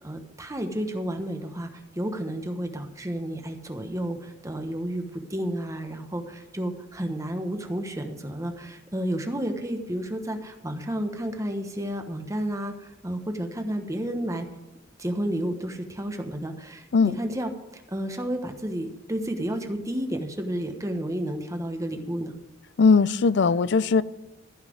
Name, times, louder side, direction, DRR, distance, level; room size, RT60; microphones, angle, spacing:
voice 1, 0.0-14.5 15.0-22.3, right 1 dB, 15° right, 5 dB, 1.1 m, -31 dB
voice 2, 22.8-24.0, left 4 dB, 65° left, 18 dB, 0.5 m, -19 dB
14.5 x 5.8 x 7.8 m, 1.0 s
head